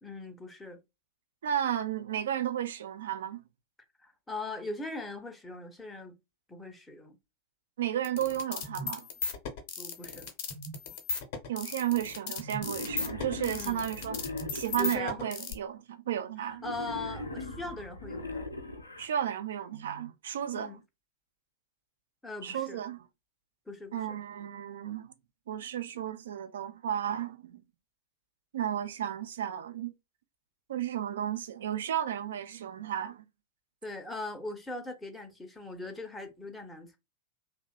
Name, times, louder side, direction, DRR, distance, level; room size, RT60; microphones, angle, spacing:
voice 1, 0.0-0.8 4.0-6.1 6.5-7.2 9.8-10.3 13.5-13.8 14.8-15.3 16.4-18.4 20.5-20.8 22.2-22.8 23.7-24.2 33.8-37.0, left 2 dB, 5° left, 0.5 m, -40 dB
voice 2, 1.4-3.4 7.8-9.1 11.5-14.2 14.5-16.6 19.0-20.8 22.4-23.0 23.9-25.1 25.5-27.6 28.5-29.9 30.7-33.2, right 10 dB, 60° right, 0.3 m, -33 dB
sound 1, 8.0-15.5, left 4 dB, 50° left, 0.6 m, -36 dB
Wild animals, 12.6-15.1 16.6-19.1, left 1 dB, 80° left, 0.4 m, -40 dB
2.7 x 2.1 x 2.2 m
figure-of-eight pair, 90°, 0 cm